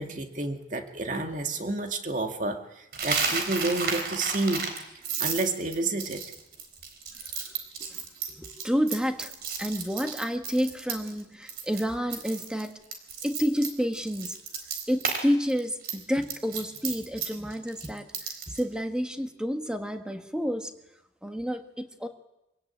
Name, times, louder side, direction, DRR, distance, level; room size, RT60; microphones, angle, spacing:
voice 1, 0.0-4.7 5.2-6.2, right 2 dB, 45° right, 5 dB, 2.1 m, -30 dB
Coin (dropping), 2.9-11.2 11.5-11.8 12.1-15.2 15.5-18.6, right 5 dB, 60° right, 4.0 m, -32 dB
voice 2, 8.3-9.3 9.6-12.8 13.2-14.4 14.9-18.1 18.5-20.7 21.2-22.1, equal, 5° right, 6 dB, 1.5 m, -29 dB
25.0 x 17.0 x 8.7 m, 0.93 s
head